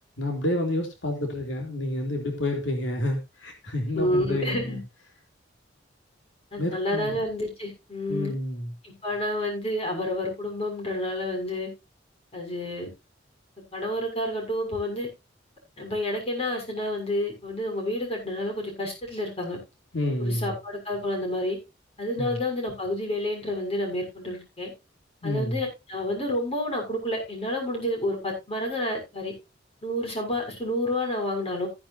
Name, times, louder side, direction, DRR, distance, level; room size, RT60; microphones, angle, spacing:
voice 1, 0.2-4.8 6.6-7.2 8.1-8.7 19.9-20.6 22.2-22.4 25.2-25.6, left 1 dB, 85° left, 3.0 m, -29 dB
voice 2, 3.9-4.8 6.5-8.3 8.8-11.7 12.3-12.9 13.7-15.1 15.8-19.6 20.2-21.6 22.0-24.7 25.2-29.3 29.8-31.7, left 1 dB, 35° left, 6.6 m, -29 dB
15.5 x 10.0 x 2.7 m
head